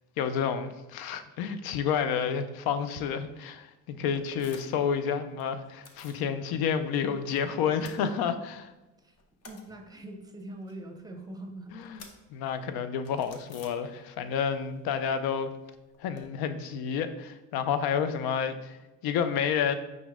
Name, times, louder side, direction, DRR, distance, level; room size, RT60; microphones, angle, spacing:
voice 1, 0.2-8.3 11.8-12.0 12.3-15.5 16.0-18.8 19.0-19.7, left 7 dB, 70° left, 10 dB, 0.5 m, -30 dB
sound 1, 4.1-4.9 5.2-6.3 6.6-7.4 7.7-8.7 9.0-14.4 14.6-16.2, left 4 dB, 40° left, 0.8 m, -54 dB
voice 2, 8.0-8.4 9.0-9.2 9.5-11.8, right 1 dB, 10° right, 4 dB, 0.7 m, -43 dB
5.2 x 2.9 x 3.5 m, 1.0 s
supercardioid pair, 75°, 38 cm